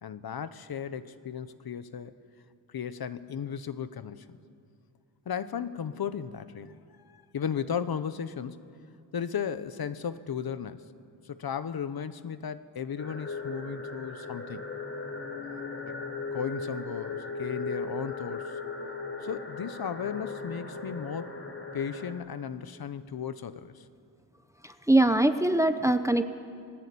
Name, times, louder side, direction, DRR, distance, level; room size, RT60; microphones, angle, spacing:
voice 1, 0.0-2.1 2.7-4.3 5.3-6.8 7.1-8.6 9.1-10.8 11.2-14.6 15.4-16.0 16.3-18.5 19.2-21.4 21.7-23.8, left 7 dB, 55° left, 13 dB, 1.0 m, -35 dB
sound 1, 13.0-22.1, left 3 dB, 30° left, 4.4 m, -37 dB
voice 2, 24.6-26.2, right 1 dB, 5° right, 9 dB, 0.7 m, -22 dB
29.5 x 20.5 x 8.6 m, 2.4 s
wide cardioid pair, 175°, 43 cm